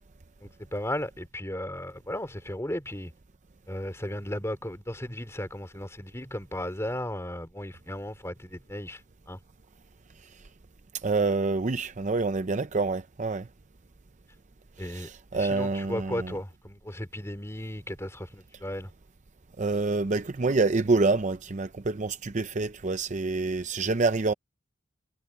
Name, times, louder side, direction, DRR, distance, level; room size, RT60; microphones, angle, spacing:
voice 1, 0.4-3.1 3.7-9.0 9.3-9.4 14.8-18.9, left 1 dB, 15° left, 3.3 m, -35 dB
voice 2, 11.0-13.5 14.8-16.4 19.6-24.3, right 3 dB, 35° right, 0.6 m, -27 dB
head